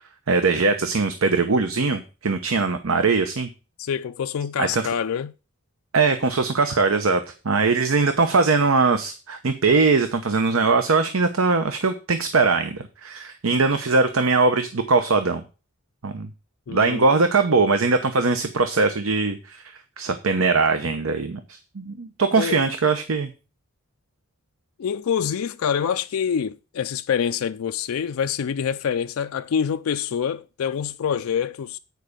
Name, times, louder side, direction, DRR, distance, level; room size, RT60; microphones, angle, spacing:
voice 1, 0.3-3.5 4.6-4.9 5.9-15.4 16.0-16.3 16.7-19.6 20.0-23.3, right 4 dB, 80° right, 0.8 m, -21 dB
voice 2, 3.8-5.3 16.7-17.1 22.4-22.6 24.8-31.8, left 7 dB, 80° left, 0.4 m, -26 dB
9.3 x 4.9 x 6.6 m
head